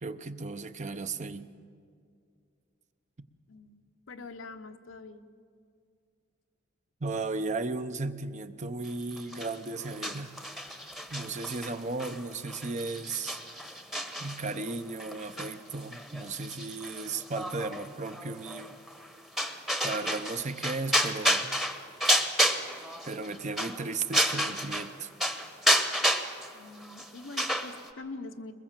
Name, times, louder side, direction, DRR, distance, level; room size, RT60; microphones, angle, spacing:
voice 1, 0.0-1.5 7.0-10.4 11.1-13.4 14.2-18.8 19.8-21.6 23.1-25.1, right 3 dB, 40° right, 10 dB, 0.8 m, -35 dB
voice 2, 3.5-5.3 26.5-28.5, left 3 dB, 85° left, 7 dB, 1.0 m, -44 dB
sound 1, 9.2-24.9 25.2-27.9, equal, ahead, 1.0 m, -31 dB
22.0 x 20.5 x 7.4 m, 2.3 s
head